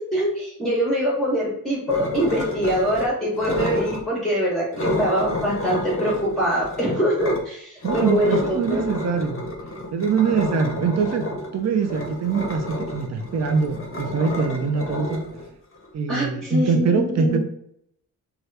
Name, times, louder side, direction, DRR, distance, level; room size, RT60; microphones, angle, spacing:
voice 1, 0.1-8.8 16.1-17.4, equal, ahead, -6 dB, 0.9 m, -23 dB
sound 1, 1.9-3.1 3.4-4.0 4.7-7.4 7.8-15.9, left 1 dB, 35° left, 0.6 m, -30 dB
voice 2, 7.8-9.4 9.9-11.3 11.5-15.2 15.9-17.4, right 5 dB, 45° right, 6 dB, 0.5 m, -23 dB
2.8 x 2.4 x 3.2 m, 0.72 s
wide cardioid pair, 100°, 37 cm